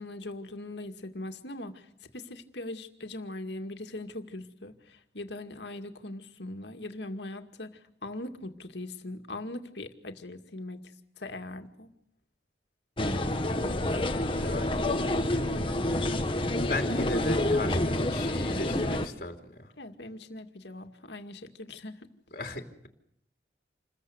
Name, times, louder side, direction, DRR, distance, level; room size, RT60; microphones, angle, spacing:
voice 1, 0.0-10.9 11.2-11.9 19.8-22.1, left 2 dB, 75° left, 6 dB, 2.3 m, -41 dB
sound 1, 13.0-19.1, left 1 dB, 30° left, 1.6 m, -28 dB
voice 2, 14.1-14.8 16.7-19.7 22.3-22.9, left 1 dB, 50° left, 3 dB, 3.1 m, -36 dB
28.0 x 21.0 x 8.1 m, 0.72 s
head